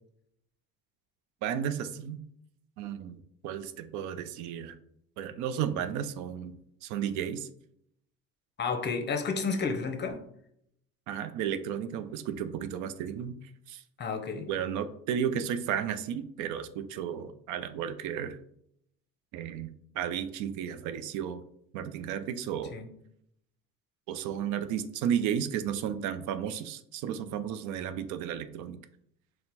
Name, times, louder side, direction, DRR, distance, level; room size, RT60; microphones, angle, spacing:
voice 1, 1.4-2.2 2.8-4.7 5.2-6.6 6.8-7.5 11.1-13.8 14.5-18.4 19.3-21.4 21.7-22.8 24.1-28.8, right 9 dB, 75° right, 10 dB, 0.5 m, -33 dB
voice 2, 8.6-10.2 14.0-14.5 22.7-22.9, left 4 dB, 35° left, 5 dB, 0.7 m, -31 dB
4.3 x 2.1 x 4.0 m, 0.72 s
supercardioid pair, 95°, 30 cm